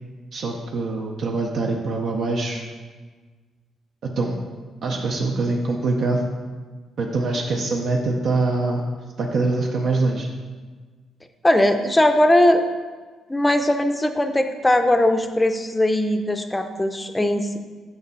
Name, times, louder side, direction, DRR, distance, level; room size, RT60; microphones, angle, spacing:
voice 1, 0.3-2.6 4.2-4.4 4.8-6.2 7.0-8.8 9.2-10.3, right 3 dB, 65° right, 0 dB, 0.6 m, -24 dB
voice 2, 11.4-12.6 13.3-17.6, left 1 dB, 10° left, 7 dB, 0.5 m, -19 dB
6.6 x 5.3 x 4.0 m, 1.4 s
cardioid pair, 90°, 0 cm